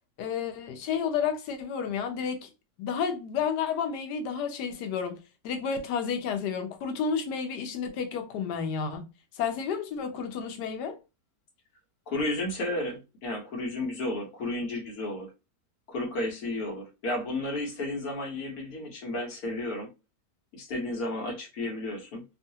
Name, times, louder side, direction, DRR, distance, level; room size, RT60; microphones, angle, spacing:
voice 1, 0.2-2.5 2.8-9.1 9.4-11.0, left 6 dB, 90° left, 1.2 m, -31 dB
voice 2, 12.1-15.3 15.9-19.9 20.5-22.2, left 1 dB, 70° left, 1.4 m, -32 dB
3.1 x 2.4 x 2.7 m
omnidirectional pair, 1.7 m